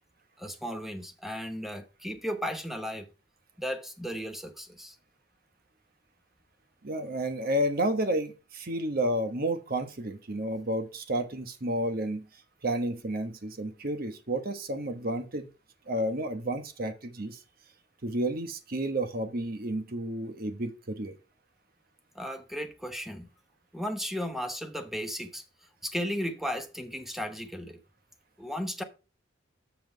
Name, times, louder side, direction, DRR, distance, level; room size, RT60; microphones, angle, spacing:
voice 1, 0.4-3.1 3.6-5.0 22.1-23.3 23.7-25.4 25.8-27.8 28.4-28.8, equal, ahead, 0.9 m, -35 dB
voice 2, 6.8-12.3 12.6-15.5 15.9-17.4 18.0-21.2, right 1 dB, 55° right, 1.1 m, -31 dB
7.1 x 5.9 x 4.5 m
head